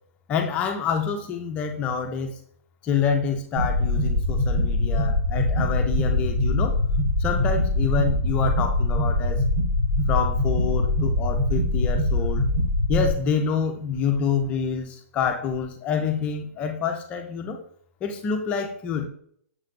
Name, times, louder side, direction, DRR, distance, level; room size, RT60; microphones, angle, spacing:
voice 1, 0.3-2.4 2.8-6.8 7.2-9.4 10.1-12.5 12.9-17.6 18.0-19.1, left 6 dB, 15° left, 4 dB, 0.4 m, -27 dB
sound 1, 3.6-13.1, left 1 dB, 50° right, 1.0 m, -23 dB
6.5 x 3.2 x 2.5 m, 0.63 s
hypercardioid pair, 165°, 8 cm